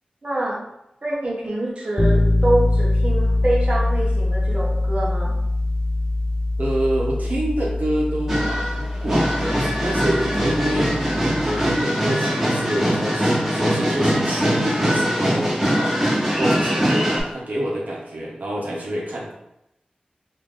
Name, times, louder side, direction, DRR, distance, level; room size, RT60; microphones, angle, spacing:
voice 1, 0.2-0.6 1.0-5.4, right 1 dB, 40° right, -4 dB, 0.8 m, -25 dB
sound 1, 2.0-11.8, left 2 dB, 30° left, 0.4 m, -23 dB
voice 2, 6.6-10.9 11.4-15.9 16.4-19.3, right 1 dB, 70° right, -3 dB, 0.9 m, -27 dB
sound 2, 8.3-17.2, equal, 15° right, 1.4 m, -22 dB
3.3 x 2.4 x 3.6 m, 0.84 s
wide cardioid pair, 70°, 3 cm